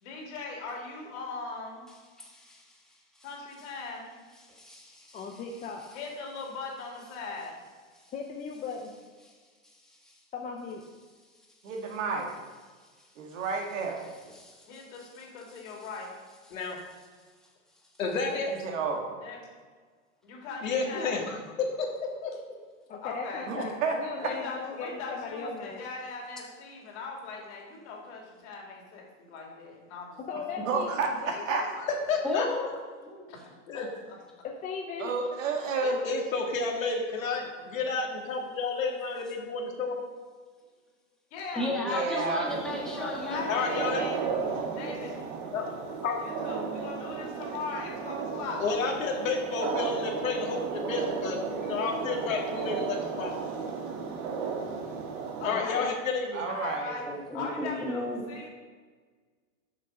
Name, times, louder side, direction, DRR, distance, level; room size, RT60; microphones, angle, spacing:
voice 1, 0.0-1.9 3.2-4.1 5.9-7.6 14.6-14.8 15.2-16.0 19.2-19.4 20.2-21.3 23.0-23.5 24.2-30.1 33.3-34.2 37.2-37.3 41.3-44.2 44.7-44.9 46.2-47.3 47.5-48.6 55.4-55.8 56.5-57.0 57.3-58.5, left 4 dB, 60° left, -1 dB, 2.5 m, -39 dB
voice 2, 2.2-2.8 3.1-3.3 4.4-5.2 9.6-10.2 14.3-14.7 32.2-32.8 33.1-33.2 41.5-43.4 57.1-58.2, left 1 dB, ahead, -3 dB, 1.4 m, -35 dB
voice 3, 5.1-5.8 8.1-8.9 10.3-10.8 22.9-25.8 30.3-31.7 34.4-35.1 55.5-55.9, left 5 dB, 20° left, 0 dB, 0.6 m, -38 dB
voice 4, 11.6-12.3 13.2-14.0 18.5-19.1 23.5-24.3 30.6-31.6 35.0-36.0 41.8-42.5 56.3-56.9, right 4 dB, 70° right, 1 dB, 1.8 m, -30 dB
voice 5, 18.0-18.5 20.6-21.4 21.8-21.9 22.2-22.3 32.1-32.7 33.7-33.9 35.8-40.0 43.5-44.0 45.5-45.6 46.0-46.2 48.6-53.3 55.4-56.5, left 4 dB, 90° left, 1 dB, 1.8 m, -31 dB
sound 1, 42.4-55.5, right 5 dB, 55° right, 1.3 m, -34 dB
7.1 x 5.4 x 5.3 m, 1.5 s
hypercardioid pair, 125°, 39 cm